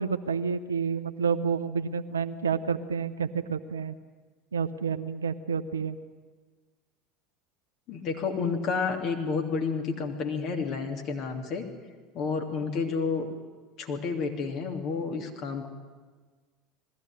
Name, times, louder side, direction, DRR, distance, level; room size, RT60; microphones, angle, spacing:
voice 1, 0.0-4.0 4.5-6.0, right 6 dB, 80° right, 11 dB, 0.8 m, -29 dB
voice 2, 7.9-11.6 12.1-13.3 13.8-15.7, left 5 dB, 50° left, 3 dB, 3.1 m, -30 dB
20.0 x 15.0 x 10.0 m, 1.4 s
figure-of-eight pair, 70°, 0 cm